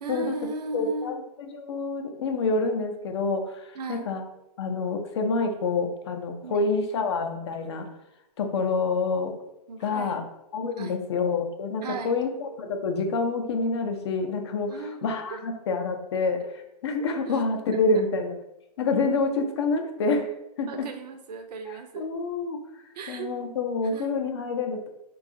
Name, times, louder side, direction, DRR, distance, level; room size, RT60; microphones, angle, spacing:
voice 1, 0.0-1.2 3.7-4.1 6.4-6.6 9.7-10.2 10.8-11.0 11.8-12.2 14.7-15.4 16.4-16.5 17.3-17.4 17.7-17.8 20.7-22.1 22.9-23.3 23.9-24.1, right 4 dB, 75° right, 6 dB, 0.6 m, -36 dB
voice 2, 0.7-4.2 4.6-7.9 8.4-9.3 9.8-10.2 10.5-18.3 18.8-20.3 20.6-20.9 21.7-22.6 23.1-24.9, left 3 dB, 40° left, 5 dB, 0.5 m, -27 dB
4.7 x 2.3 x 2.6 m, 0.87 s
hypercardioid pair, 170°, 21 cm